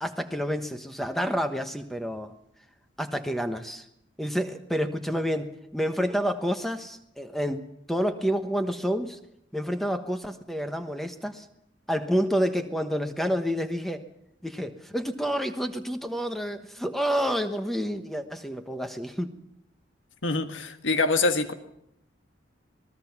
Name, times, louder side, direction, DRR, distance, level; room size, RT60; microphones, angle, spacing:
voice 1, 0.0-2.3 3.0-3.8 4.2-9.2 9.5-11.4 11.9-14.0 14.4-19.3, equal, ahead, 7 dB, 1.1 m, -29 dB
voice 2, 20.2-21.5, left 3 dB, 80° left, 7 dB, 1.7 m, -25 dB
26.0 x 19.5 x 6.0 m, 0.78 s
head